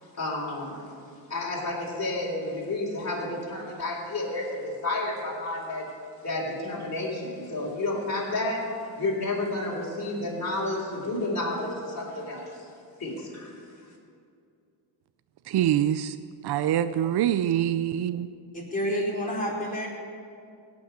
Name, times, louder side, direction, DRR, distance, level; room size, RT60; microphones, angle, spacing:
voice 1, 0.1-0.8 1.3-5.9 6.2-8.7 9.0-12.7 13.0-13.5, left 2 dB, 35° left, -4 dB, 4.1 m, -31 dB
voice 2, 15.5-16.1 16.4-18.3, right 11 dB, 55° right, 12 dB, 0.6 m, -25 dB
voice 3, 18.5-19.9, equal, 15° left, -4 dB, 4.5 m, -29 dB
17.5 x 6.3 x 10.0 m, 2.4 s
cardioid pair, 80°, 46 cm